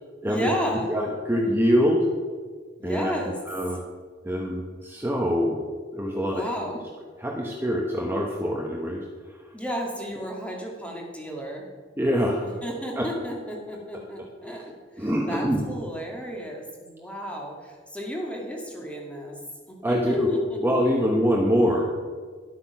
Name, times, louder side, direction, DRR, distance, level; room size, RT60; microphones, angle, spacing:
voice 1, 0.3-0.9 2.8-3.4 6.2-6.8 9.5-11.7 12.4-19.4 19.7-20.6, equal, 5° left, 0 dB, 2.0 m, -33 dB
voice 2, 0.9-2.1 2.8-3.1 3.5-3.8 4.2-5.6 5.9-6.5 7.2-9.0 12.0-12.4 13.0-13.1 15.0-15.6 19.8-20.3 20.6-21.9, equal, 10° right, -2 dB, 1.1 m, -24 dB
11.5 x 8.5 x 5.9 m, 1.5 s
head